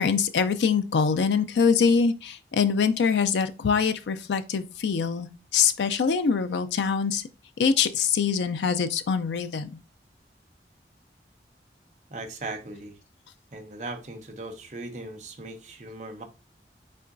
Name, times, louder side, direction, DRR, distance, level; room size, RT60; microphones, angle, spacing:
voice 1, 0.0-7.2 7.6-9.7, left 6 dB, 85° left, 0.4 m, -24 dB
voice 2, 12.1-13.0 13.5-16.2, right 2 dB, 40° right, 0.8 m, -38 dB
5.4 x 3.8 x 2.6 m
head